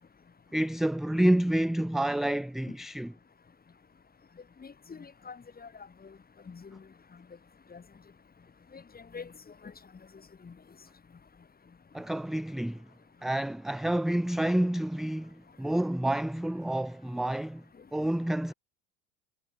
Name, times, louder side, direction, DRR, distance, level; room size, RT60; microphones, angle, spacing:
voice 1, 0.5-3.1 11.9-12.8 13.2-17.6 17.9-18.5, right 1 dB, ahead, 0.4 m, -28 dB
voice 2, 4.6-5.7 6.0-6.2 6.5-6.8 7.7-7.8 8.7-9.3 9.6-9.7 10.4-10.5, left 5 dB, 25° left, 5.4 m, -45 dB
hypercardioid pair, 85°, 38 cm